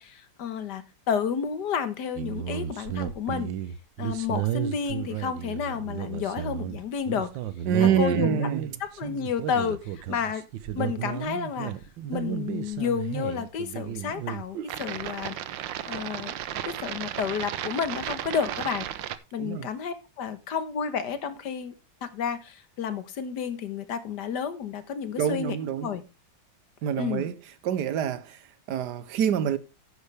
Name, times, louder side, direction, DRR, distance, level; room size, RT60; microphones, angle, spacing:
voice 1, 0.0-3.5 4.0-7.3 7.8-8.5 8.8-10.4 10.8-11.7 12.1-15.4 15.9-16.3 16.6-18.9 19.3-21.7 22.0-26.0 27.0-27.2, left 7 dB, 65° left, 1.7 m, -31 dB
sound 1, 2.2-19.2, right 11 dB, 85° right, 1.5 m, -33 dB
voice 2, 7.7-8.6 19.4-19.7 25.2-25.9 26.8-27.3 27.6-29.6, right 9 dB, 70° right, 1.4 m, -26 dB
11.0 x 9.8 x 3.4 m
omnidirectional pair, 2.0 m